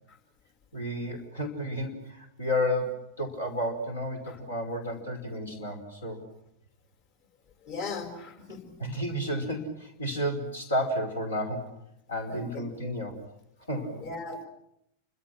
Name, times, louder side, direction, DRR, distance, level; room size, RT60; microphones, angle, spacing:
voice 1, 0.7-6.2 8.8-11.7 12.1-13.1 13.7-14.1, equal, 75° left, 4 dB, 5.3 m, -32 dB
voice 2, 7.7-8.7 12.3-12.6 14.0-14.5, left 4 dB, 50° left, 7 dB, 5.9 m, -38 dB
30.0 x 25.5 x 6.2 m, 0.78 s
figure-of-eight pair, 90°, 0 cm